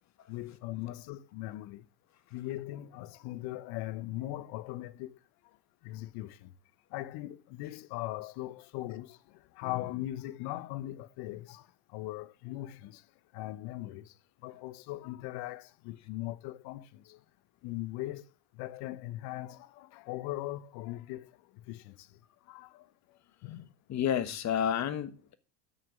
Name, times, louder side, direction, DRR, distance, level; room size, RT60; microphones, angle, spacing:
voice 1, 0.3-1.9 2.3-5.2 5.8-6.5 6.9-13.1 13.3-14.1 14.4-17.2 17.6-18.3 18.5-22.2 22.5-22.9 23.4-23.7, left 16 dB, 50° left, 0.8 m, -40 dB
voice 2, 23.9-25.3, left 9 dB, 35° left, 1.4 m, -30 dB
9.5 x 6.6 x 6.3 m
hypercardioid pair, 100°, 48 cm